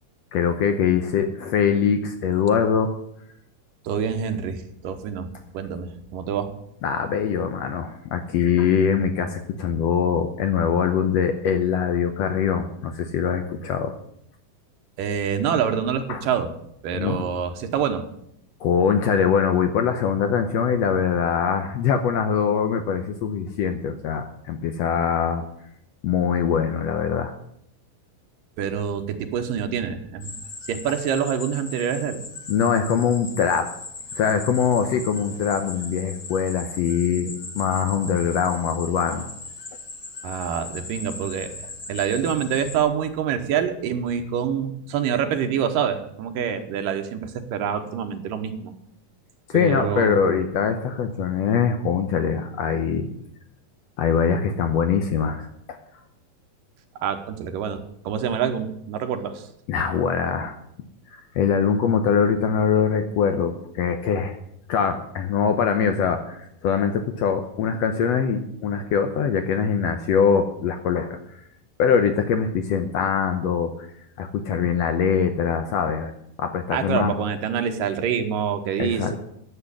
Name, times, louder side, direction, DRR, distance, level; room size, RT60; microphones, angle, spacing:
voice 1, 0.3-2.9 6.8-13.9 16.1-16.2 17.0-17.2 18.6-25.4 26.0-27.3 32.5-33.7 34.2-39.3 49.5-53.1 54.0-55.8 59.7-60.6 61.1-64.4 64.7-71.2 71.8-73.9 74.2-76.1 76.4-77.1 78.8-79.1, left 7 dB, 85° left, 7 dB, 1.4 m, -23 dB
voice 2, 3.8-5.3 5.5-6.5 15.0-16.5 16.8-18.0 28.6-30.3 30.7-32.2 40.2-48.7 49.5-50.4 57.0-59.5 76.7-79.2, right 8 dB, 75° right, 6 dB, 2.6 m, -26 dB
sound 1, 30.2-42.8, left 3 dB, 35° left, 2.2 m, -38 dB
10.5 x 7.9 x 9.8 m, 0.75 s
omnidirectional pair, 4.1 m